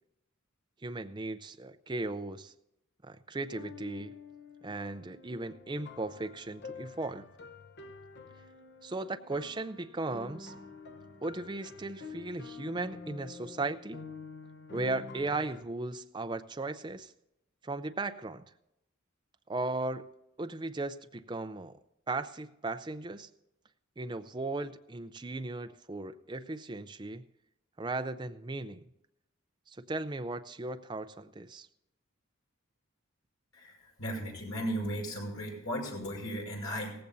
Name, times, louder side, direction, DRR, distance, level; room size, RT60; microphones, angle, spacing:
voice 1, 0.8-2.5 3.0-4.1 4.6-7.3 8.8-10.5 11.2-14.0 14.7-17.1 17.6-18.4 19.5-20.1 20.4-21.8 22.1-23.3 24.0-27.2 27.8-28.8 29.7-31.7, right 2 dB, 20° right, 9 dB, 0.5 m, -37 dB
sound 1, 3.4-15.6, left 4 dB, 55° left, 1.0 m, -48 dB
voice 2, 33.5-36.9, equal, 80° left, 0 dB, 5.5 m, -36 dB
17.0 x 15.5 x 2.7 m, 0.86 s
head